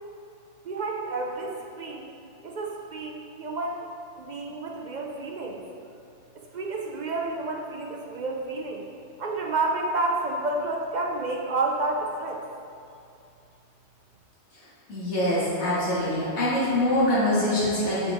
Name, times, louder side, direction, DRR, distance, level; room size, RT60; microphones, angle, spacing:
voice 1, 0.7-2.1 2.4-3.9 4.2-5.6 6.4-8.9 9.2-12.4, right 2 dB, 55° right, 0 dB, 0.5 m, -30 dB
voice 2, 14.9-18.1, left 1 dB, 80° left, -9 dB, 1.9 m, -24 dB
6.5 x 4.2 x 3.4 m, 2.5 s
omnidirectional pair, 1.2 m